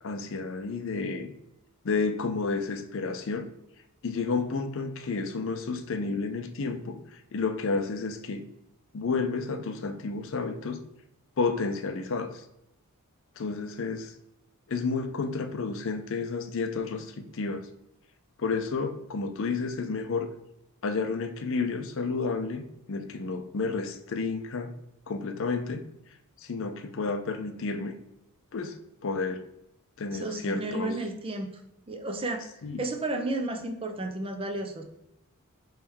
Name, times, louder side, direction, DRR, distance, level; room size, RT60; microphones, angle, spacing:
voice 1, 0.0-1.3 1.8-3.5 4.0-8.4 8.9-10.8 11.4-12.4 13.4-14.1 14.7-17.7 18.4-20.3 20.8-22.6 22.9-24.7 25.1-25.8 26.4-28.0 28.5-28.8 29.0-29.5 30.0-30.9 32.6-32.8, left 4 dB, 60° left, 7 dB, 0.5 m, -31 dB
voice 2, 30.1-31.6 31.9-32.5 32.8-34.8, right 2 dB, 25° right, 4 dB, 0.5 m, -32 dB
4.6 x 3.2 x 3.5 m, 0.86 s
head